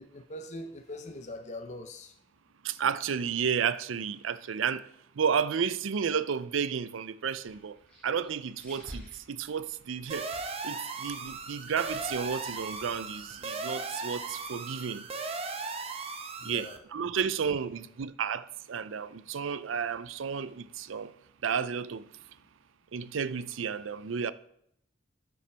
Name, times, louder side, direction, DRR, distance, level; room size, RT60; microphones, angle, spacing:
voice 1, 0.0-2.2 16.4-16.8, left 1 dB, 35° left, 0.7 m, -42 dB
voice 2, 2.6-7.8 8.0-10.4 10.6-15.1 16.4-21.1 21.4-22.1 22.9-24.3, right 7 dB, 85° right, 0.5 m, -32 dB
sound 1, 7.3-14.7, equal, 5° left, 4.1 m, -53 dB
sound 2, 10.1-16.8, right 4 dB, 30° right, 0.8 m, -37 dB
12.5 x 7.0 x 3.4 m
head